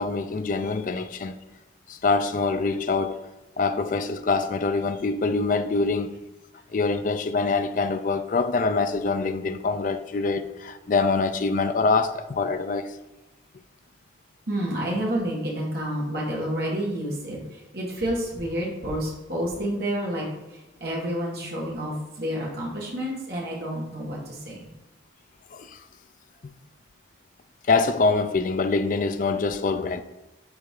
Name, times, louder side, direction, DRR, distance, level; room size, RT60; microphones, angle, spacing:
voice 1, 0.0-1.3 1.9-3.2 3.6-6.2 6.7-13.0 25.5-25.8 26.4-26.5 27.7-30.0, left 4 dB, 40° left, 0.4 m, -25 dB
voice 2, 14.5-24.7, equal, 50° right, 1.7 m, -29 dB
7.0 x 4.4 x 3.7 m
head